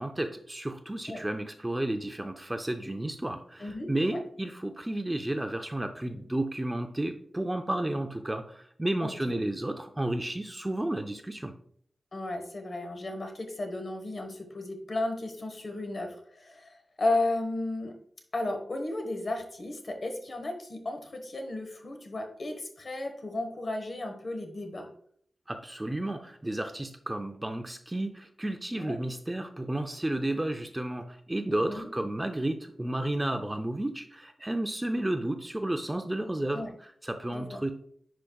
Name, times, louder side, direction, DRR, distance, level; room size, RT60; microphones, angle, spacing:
voice 1, 0.0-11.5 25.5-37.7, right 1 dB, 15° right, 6 dB, 0.4 m, -32 dB
voice 2, 3.6-4.2 9.0-9.4 12.1-17.9 18.3-24.9 28.8-29.0 31.7-31.9 36.5-36.7 37.3-37.6, left 2 dB, 50° left, 4 dB, 1.2 m, -34 dB
10.0 x 4.8 x 2.3 m, 0.63 s
wide cardioid pair, 135°, 0 cm